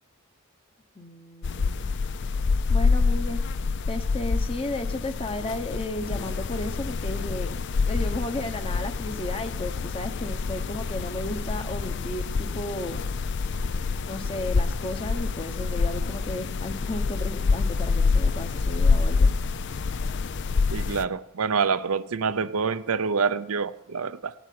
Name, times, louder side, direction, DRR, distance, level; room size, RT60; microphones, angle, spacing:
voice 1, 1.0-1.9 2.7-3.4 3.9-13.0 14.1-19.3, left 1 dB, 25° left, 1.0 m, -34 dB
sound 1, 1.4-21.0, left 4 dB, 50° left, 0.4 m, -26 dB
voice 2, 20.7-24.3, right 5 dB, 75° right, 0.6 m, -26 dB
17.0 x 8.1 x 9.4 m
head